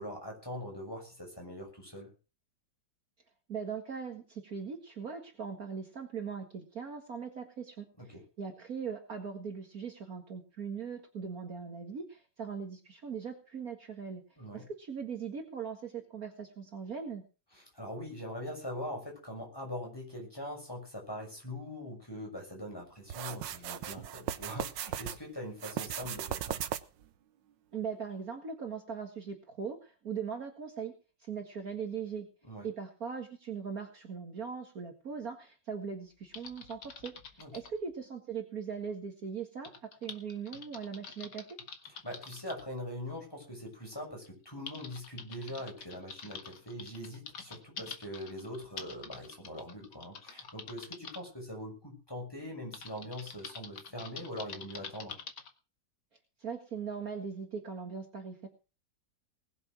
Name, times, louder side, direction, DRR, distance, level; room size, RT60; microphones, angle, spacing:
voice 1, 0.0-2.1 8.0-8.2 14.4-14.7 17.5-26.6 32.4-32.7 37.4-37.5 41.9-55.2, equal, 10° left, 0 dB, 6.4 m, -42 dB
voice 2, 3.5-14.2 14.5-17.2 27.7-30.9 31.2-32.3 32.6-37.1 37.5-41.5 56.4-58.5, right 6 dB, 50° right, 4 dB, 2.2 m, -40 dB
sound 1, 23.1-25.2 25.6-27.1, right 10 dB, 80° right, 1.5 m, -37 dB
Typing, 36.3-37.7 39.6-42.6 43.7-43.8 44.2-51.2 52.7-55.5, left 6 dB, 70° left, 2.3 m, -46 dB
20.0 x 7.1 x 6.1 m, 0.34 s
omnidirectional pair, 2.0 m